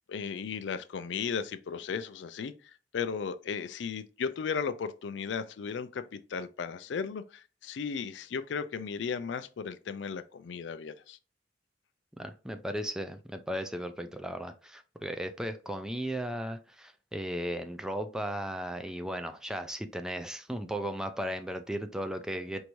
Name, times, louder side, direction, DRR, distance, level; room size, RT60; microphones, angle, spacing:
voice 1, 0.1-11.2, left 6 dB, 75° left, 0.4 m, -35 dB
voice 2, 12.2-22.6, equal, 5° right, 0.3 m, -36 dB
4.6 x 2.6 x 2.9 m
head